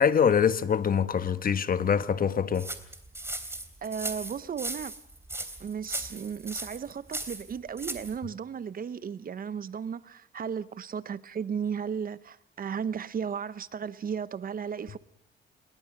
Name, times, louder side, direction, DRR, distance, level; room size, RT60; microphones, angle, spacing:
voice 1, 0.0-2.7, left 7 dB, 45° left, 1.4 m, -24 dB
sound 1, 2.5-8.2, right 2 dB, 10° right, 3.2 m, -37 dB
voice 2, 3.8-4.9 5.6-15.0, right 7 dB, 45° right, 0.9 m, -35 dB
26.5 x 22.5 x 6.6 m
cardioid pair, 90°, 20 cm